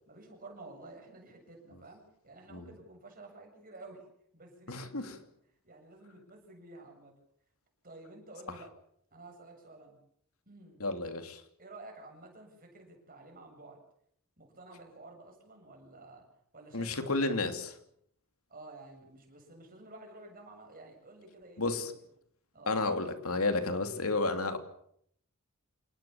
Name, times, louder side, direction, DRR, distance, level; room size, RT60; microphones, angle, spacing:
voice 1, 0.1-4.0 4.3-5.3 5.6-7.1 7.8-8.7 9.1-10.0 10.5-10.8 11.6-13.8 14.4-16.3 16.5-17.5 18.5-21.9 22.5-22.8, right 2 dB, 40° right, 3 dB, 7.7 m, -51 dB
voice 2, 4.7-5.0 10.8-11.4 16.7-17.7 21.6-21.9 22.7-24.6, left 3 dB, 80° left, 7 dB, 2.9 m, -31 dB
27.5 x 19.5 x 7.3 m, 0.69 s
head